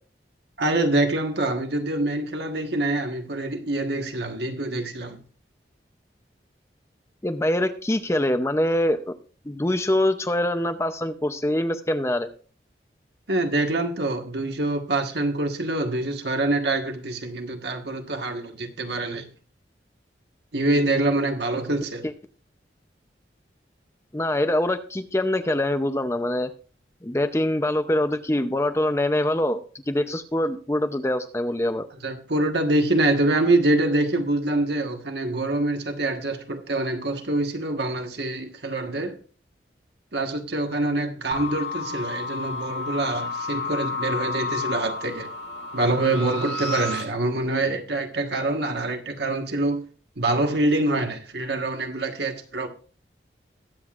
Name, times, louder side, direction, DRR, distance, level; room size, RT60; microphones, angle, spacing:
voice 1, 0.6-5.2 13.3-19.3 20.5-22.0 32.0-39.2 40.1-45.3 45.7-49.8 50.2-52.7, right 2 dB, 70° right, 1.5 m, -25 dB
voice 2, 7.2-9.2 9.4-12.3 22.0-22.1 24.1-26.5 27.0-31.9, left 1 dB, 15° left, 0.6 m, -24 dB
sound 1, 41.3-47.0, left 3 dB, 70° left, 2.3 m, -31 dB
21.0 x 7.8 x 2.5 m
head